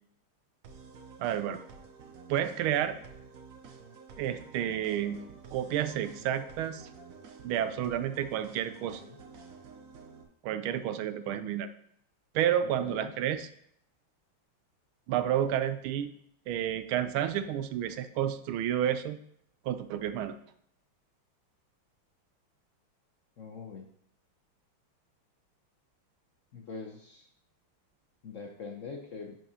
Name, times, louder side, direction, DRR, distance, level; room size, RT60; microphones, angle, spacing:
sound 1, 0.6-10.2, right 5 dB, 60° right, 0.9 m, -50 dB
voice 1, 1.2-1.6 2.3-3.0 4.2-6.9 7.4-9.0 10.4-11.7 12.3-13.5 15.1-16.1 16.5-19.2 19.6-20.3, right 10 dB, 80° right, 11 dB, 1.4 m, -30 dB
voice 2, 12.8-13.1 23.4-23.9 26.5-27.3 28.2-29.4, left 5 dB, 70° left, 1 dB, 0.7 m, -43 dB
10.5 x 6.2 x 2.8 m, 0.68 s
omnidirectional pair, 2.3 m